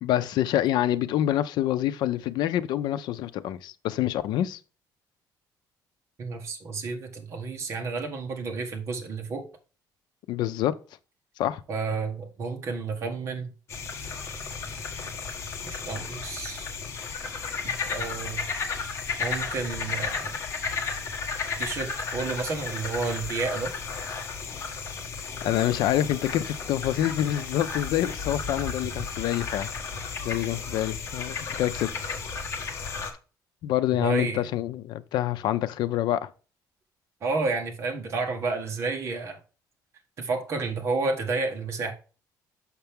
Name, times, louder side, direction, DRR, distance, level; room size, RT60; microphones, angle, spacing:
voice 1, 0.0-4.6 10.3-10.7 11.4-11.6 25.4-29.7 30.2-32.2 33.6-36.3, left 12 dB, 75° left, 0.6 m, -26 dB
voice 2, 6.2-9.4 11.7-13.5 15.6-16.7 17.6-18.4 19.2-20.4 21.6-23.7 34.0-34.5 37.2-39.4 40.2-41.9, right 4 dB, 40° right, 1.5 m, -31 dB
sound 1, 13.7-33.1, left 5 dB, 35° left, 1.3 m, -33 dB
6.7 x 5.8 x 3.5 m
cardioid pair, 160°, 7 cm